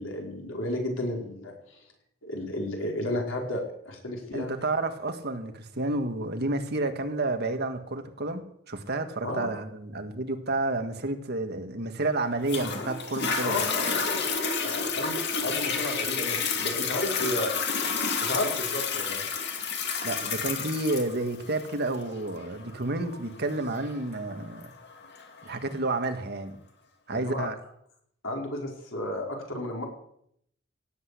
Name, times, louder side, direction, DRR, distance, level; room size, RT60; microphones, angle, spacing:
voice 1, 0.0-1.8 2.2-4.5 9.2-9.5 13.4-17.5 18.2-19.2 27.1-27.5 28.2-29.9, left 1 dB, 80° left, 0 dB, 4.8 m, -33 dB
voice 2, 4.3-8.4 8.7-13.6 20.0-24.6 25.4-26.6 27.1-27.6, right 2 dB, 55° right, 7 dB, 1.8 m, -30 dB
Toilet flush, 12.5-25.5 26.1-26.2, left 5 dB, 60° left, 2.5 m, -30 dB
17.5 x 8.2 x 8.4 m, 0.71 s
head